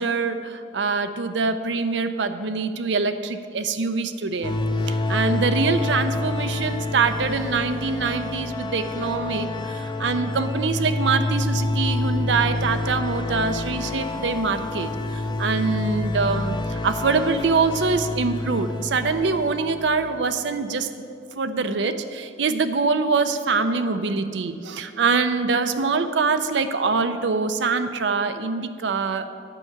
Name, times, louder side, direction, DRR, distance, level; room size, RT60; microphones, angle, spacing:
voice 1, 0.0-4.5 4.9-9.5 9.7-14.9 15.4-20.9 21.3-29.3, right 4 dB, 80° right, 9 dB, 0.6 m, -24 dB
sound 1, 4.4-20.3, left 2 dB, 25° left, 0.5 m, -28 dB
10.0 x 5.7 x 7.9 m, 2.5 s
head